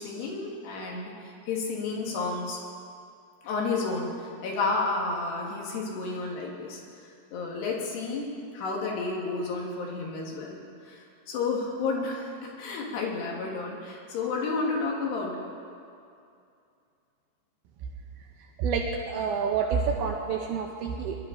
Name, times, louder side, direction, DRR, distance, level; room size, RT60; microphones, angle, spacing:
voice 1, 0.0-2.6 3.4-6.8 7.3-10.6 10.9-12.3 12.6-15.3, left 3 dB, 85° left, -2 dB, 4.0 m, -31 dB
voice 2, 18.6-21.2, right 6 dB, 80° right, 1 dB, 2.6 m, -28 dB
20.5 x 12.0 x 3.9 m, 2.5 s
omnidirectional pair, 4.6 m